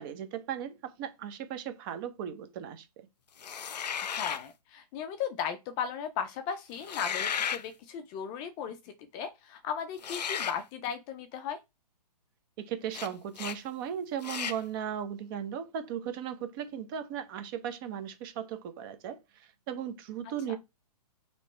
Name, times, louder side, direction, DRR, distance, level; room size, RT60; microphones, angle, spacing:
voice 1, 0.0-3.1 12.6-20.6, right 9 dB, 35° right, 0.9 m, -37 dB
sound 1, 3.4-4.5 6.8-7.6 10.0-10.6 12.9-13.1 13.3-13.6 14.2-14.6, left 8 dB, 85° left, 0.5 m, -34 dB
voice 2, 4.0-11.6, left 8 dB, 20° left, 0.4 m, -36 dB
3.2 x 3.0 x 4.2 m
hypercardioid pair, 140°, 21 cm